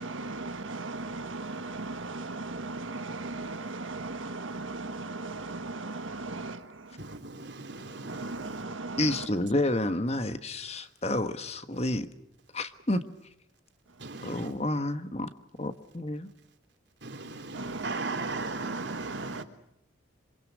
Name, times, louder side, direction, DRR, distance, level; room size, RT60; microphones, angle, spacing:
voice 1, 0.0-7.2 7.7-9.3 13.9-14.1 17.5-19.4, right 3 dB, 80° right, 1.5 m, -37 dB
voice 2, 7.0-8.6 14.0-14.5 17.0-19.4, right 3 dB, 60° right, 3.6 m, -38 dB
voice 3, 9.0-12.1 12.5-13.3 14.2-15.3 15.6-16.3, left 1 dB, 30° left, 1.4 m, -30 dB
27.0 x 27.0 x 6.3 m
head